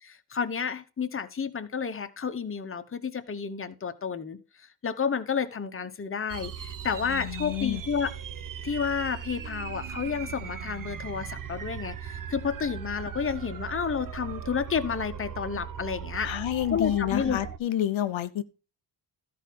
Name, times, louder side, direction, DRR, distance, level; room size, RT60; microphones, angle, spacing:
voice 1, 0.0-8.1 8.6-16.4 16.7-17.4, left 6 dB, 25° left, 1.0 m, -31 dB
sound 1, 6.3-17.6, right 8 dB, 45° right, 0.7 m, -38 dB
voice 2, 7.1-7.8 16.2-18.4, left 12 dB, 80° left, 0.9 m, -29 dB
13.5 x 4.7 x 5.9 m
wide cardioid pair, 125°, 46 cm